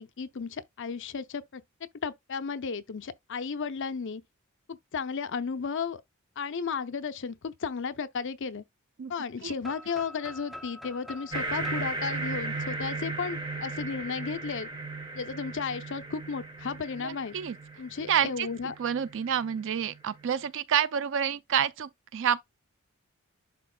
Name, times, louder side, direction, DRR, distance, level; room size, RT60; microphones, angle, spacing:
voice 1, 0.0-1.6 2.0-4.2 4.7-6.0 6.4-8.6 9.1-14.7 15.1-17.3 17.8-18.7, left 5 dB, 55° left, 0.6 m, -34 dB
sound 1, 9.6-13.5, left 1 dB, ahead, 0.5 m, -45 dB
sound 2, 11.3-20.3, right 3 dB, 20° right, 1.2 m, -37 dB
voice 2, 17.0-17.6 18.1-18.5 18.8-22.4, right 8 dB, 55° right, 0.4 m, -28 dB
11.0 x 3.9 x 2.2 m
head